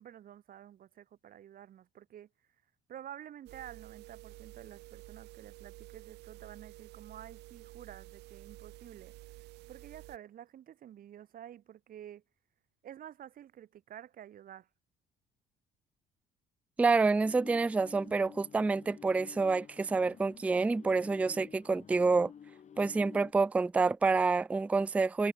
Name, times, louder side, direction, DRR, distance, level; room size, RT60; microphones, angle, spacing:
voice 1, 0.0-2.3 2.9-9.1 9.7-12.2 12.8-14.7, right 10 dB, 55° right, 4.2 m, -50 dB
sound 1, 3.5-10.2, right 19 dB, 85° right, 0.9 m, -51 dB
voice 2, 16.8-22.3 22.8-25.3, right 4 dB, 10° right, 0.3 m, -28 dB
sound 2, 17.2-23.3, left 8 dB, 45° left, 4.8 m, -52 dB
cardioid pair, 110°, 17 cm